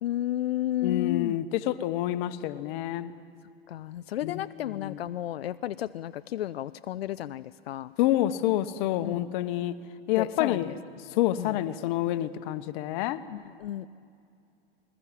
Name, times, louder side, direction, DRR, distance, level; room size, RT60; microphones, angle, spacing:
voice 1, 0.0-1.4 3.7-7.9 9.0-9.2 10.2-10.7 11.4-11.6 13.3-13.9, left 13 dB, 85° left, 12 dB, 0.5 m, -32 dB
voice 2, 0.8-3.1 4.2-5.0 8.0-9.8 10.1-10.7 11.1-13.2, left 14 dB, 55° left, 11 dB, 1.1 m, -28 dB
21.0 x 19.5 x 7.6 m, 2.4 s
hypercardioid pair, 105°, 30 cm